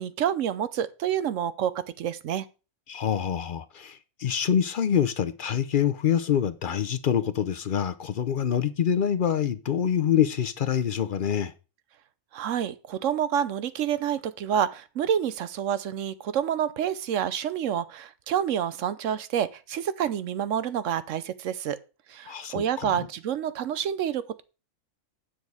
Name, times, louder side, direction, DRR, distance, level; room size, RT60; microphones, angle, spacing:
voice 1, 0.0-2.5 12.3-21.8 22.1-24.4, right 9 dB, 70° right, 1.0 m, -28 dB
voice 2, 2.9-11.5 22.3-23.1, left 8 dB, 55° left, 0.5 m, -26 dB
9.4 x 6.3 x 4.7 m
omnidirectional pair, 1.5 m